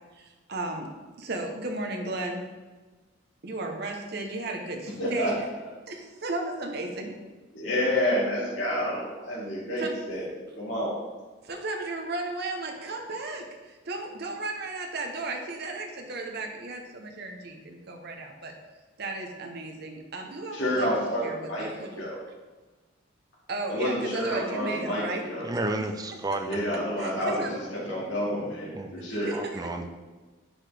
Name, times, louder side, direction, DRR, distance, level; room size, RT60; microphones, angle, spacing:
voice 1, 0.1-0.9 1.2-2.4 3.4-5.4 5.9-7.1 9.8-9.9 11.4-18.5 19.0-20.9 21.2-22.0 23.5-25.2 27.0-27.7 29.1-29.9, right 2 dB, 55° right, 2 dB, 0.9 m, -35 dB
voice 2, 5.0-5.3 7.5-10.3 10.5-10.9 20.5-21.7 22.0-22.1 23.7-25.4 26.5-27.6 27.9-29.3, equal, 70° left, -8 dB, 2.1 m, -29 dB
voice 3, 25.4-26.6 28.7-29.0 29.3-29.9, right 2 dB, 20° right, 5 dB, 0.5 m, -31 dB
10.0 x 4.8 x 3.4 m, 1.3 s
head